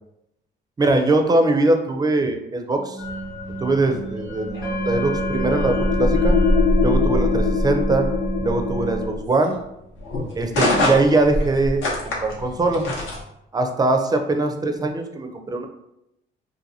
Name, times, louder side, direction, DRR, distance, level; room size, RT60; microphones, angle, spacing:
voice 1, 0.8-3.0 3.6-6.4 6.8-8.1 8.4-9.6 10.3-13.0 13.5-15.7, right 2 dB, 20° right, 5 dB, 0.4 m, -21 dB
sound 1, 2.7-9.1, right 1 dB, 50° left, 0.9 m, -29 dB
sound 2, 3.0-13.2, left 2 dB, 80° left, 0.8 m, -29 dB
sound 3, 4.3-9.3, left 3 dB, 25° left, 0.6 m, -22 dB
2.6 x 2.5 x 2.7 m, 0.84 s
cardioid pair, 90°, 20 cm